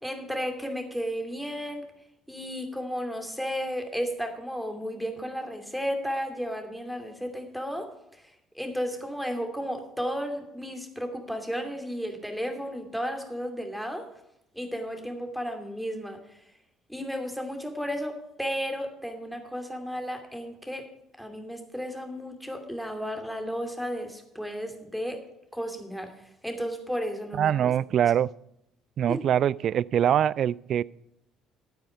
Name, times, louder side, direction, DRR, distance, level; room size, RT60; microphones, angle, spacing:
voice 1, 0.0-1.9 2.3-7.9 8.5-14.1 14.5-16.2 16.9-20.9 21.2-25.2 25.5-26.1 26.4-27.7 29.1-29.2, equal, ahead, 4 dB, 2.6 m, -33 dB
voice 2, 27.3-28.3 29.0-30.8, right 10 dB, 50° right, 23 dB, 0.3 m, -23 dB
12.5 x 9.1 x 5.1 m, 0.80 s
figure-of-eight pair, 50°, 0 cm